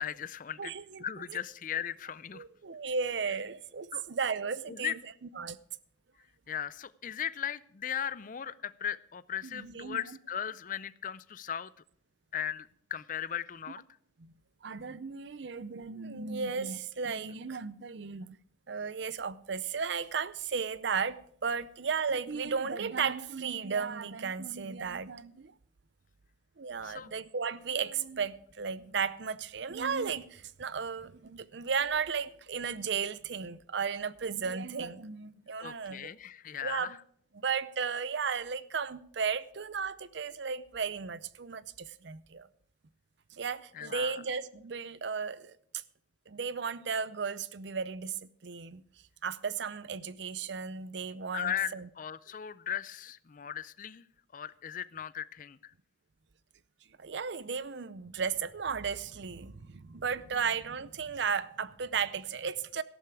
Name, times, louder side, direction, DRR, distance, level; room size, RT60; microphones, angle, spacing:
voice 1, 0.0-0.7 1.0-2.4 3.9-4.0 4.7-4.9 6.5-11.7 12.3-13.8 26.8-27.1 35.6-37.0 43.7-44.2 51.3-54.0 54.3-55.7, left 9 dB, 45° left, 0.4 m, -37 dB
voice 2, 0.6-1.0 1.3-1.4 2.3-5.0 5.4-5.6 9.4-10.0 14.2-14.3 14.6-18.4 18.7-25.5 26.6-36.1 36.6-37.0 37.3-42.5 43.3-45.8 46.3-48.8 49.2-51.9 57.0-62.8, right 6 dB, 65° right, 0.6 m, -35 dB
13.5 x 11.5 x 4.7 m
head